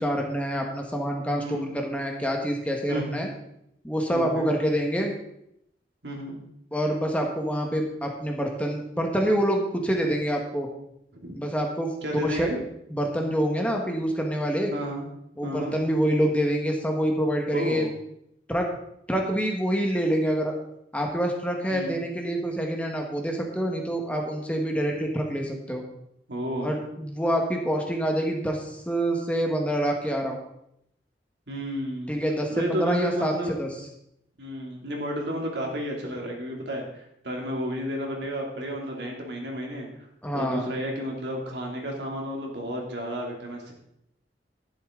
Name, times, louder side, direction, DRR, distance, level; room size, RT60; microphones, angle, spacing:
voice 1, 0.0-3.3 3.8-5.1 6.7-10.7 11.3-11.9 12.2-12.5 12.9-14.7 15.4-17.9 18.5-18.6 19.1-20.5 20.9-25.8 26.6-30.4 32.1-33.3 33.6-33.7 40.2-40.6, equal, 10° left, 1 dB, 1.5 m, -26 dB
voice 2, 1.4-1.7 2.9-3.3 4.1-4.5 6.0-6.4 11.2-11.4 12.0-12.6 14.7-15.1 15.4-15.7 17.5-17.8 21.7-22.0 26.3-26.7 31.5-32.1 32.5-33.6 34.4-39.9 40.3-43.7, equal, 75° right, 0 dB, 2.8 m, -32 dB
11.0 x 11.0 x 3.9 m, 0.76 s
head